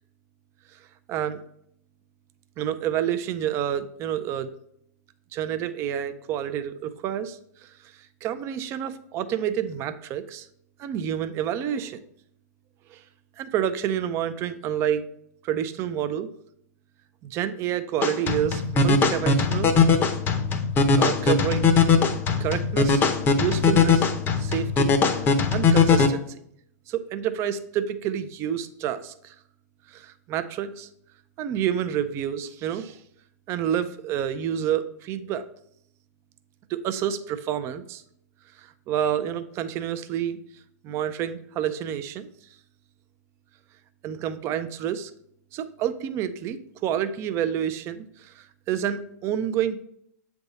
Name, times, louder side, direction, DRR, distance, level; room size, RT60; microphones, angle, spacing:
voice 1, 1.1-1.4 2.6-4.5 5.3-7.4 8.2-10.5 10.8-12.0 12.9-13.0 13.4-15.0 15.4-16.3 17.2-19.7 21.0-21.7 22.4-23.0 23.4-24.1 24.4-25.0 25.5-26.4 26.9-29.3 29.9-30.9 31.4-33.0 33.5-35.5 36.7-38.0 38.6-40.4 40.8-42.3 44.0-45.1 45.5-49.8, right 10 dB, 30° right, 11 dB, 0.5 m, -28 dB
sound 1, 18.0-26.1, left 5 dB, 20° left, 0.7 m, -20 dB
7.9 x 3.5 x 4.0 m, 0.70 s
hypercardioid pair, 145°, 9 cm